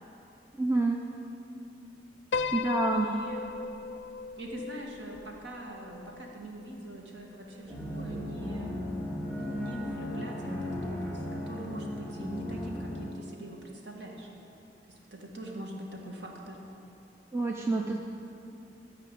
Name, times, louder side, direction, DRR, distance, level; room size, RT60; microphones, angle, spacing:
voice 1, 0.6-1.0 2.5-3.1 17.3-18.0, right 2 dB, 15° right, 0 dB, 0.5 m, -27 dB
Piano, 2.3-6.7, left 4 dB, 70° left, 0.4 m, -36 dB
voice 2, 2.9-3.5 4.4-8.9 9.3-14.3 15.1-16.6, right 1 dB, 75° right, 0 dB, 1.7 m, -42 dB
sound 1, 7.7-13.0, left 1 dB, 5° left, 3.2 m, -36 dB
13.5 x 4.9 x 8.6 m, 2.8 s
head